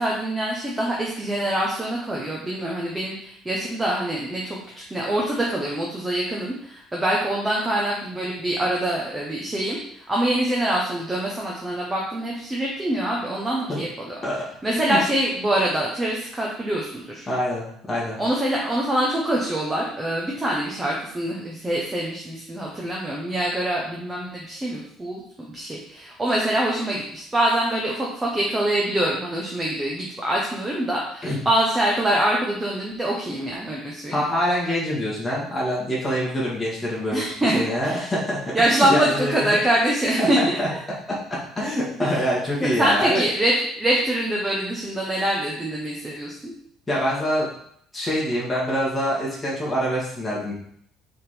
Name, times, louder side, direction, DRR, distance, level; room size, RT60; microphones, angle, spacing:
voice 1, 0.0-4.6 4.9-14.1 14.6-17.3 18.2-34.3 37.1-38.1 38.5-40.6 42.0-42.2 42.6-46.5, right 1 dB, 10° right, -3 dB, 1.1 m, -24 dB
voice 2, 17.3-18.2 31.2-31.4 34.1-37.2 37.5-38.4 38.7-39.6 40.2-40.7 41.6-43.2 46.9-47.5 47.9-50.5, equal, 10° left, -7 dB, 2.0 m, -25 dB
5.5 x 3.8 x 5.1 m, 0.68 s
cardioid pair, 135°, 0 cm